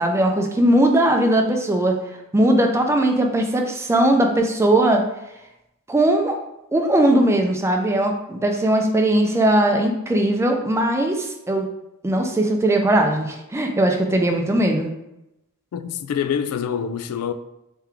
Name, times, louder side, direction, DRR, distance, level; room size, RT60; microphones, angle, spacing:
voice 1, 0.0-2.0 2.3-5.0 5.9-6.4 6.7-11.7 12.0-14.9, right 1 dB, 10° right, 0.4 m, -19 dB
voice 2, 15.7-17.3, left 8 dB, 80° left, 0.3 m, -25 dB
3.4 x 3.2 x 3.4 m
head